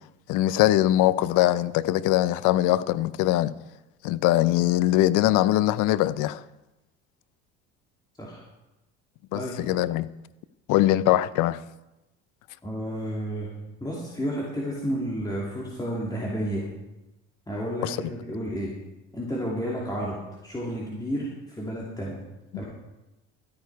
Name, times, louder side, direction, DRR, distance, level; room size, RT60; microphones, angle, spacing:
voice 1, 0.3-3.5 4.0-6.4 9.3-10.1 10.7-11.6 17.8-18.0, left 14 dB, 65° left, 0.6 m, -22 dB
voice 2, 12.6-13.5 13.8-16.7 17.5-18.7 19.1-20.2 20.4-22.2 22.5-22.6, equal, 10° left, 2.8 m, -31 dB
13.0 x 9.5 x 4.7 m
hypercardioid pair, 75°, 34 cm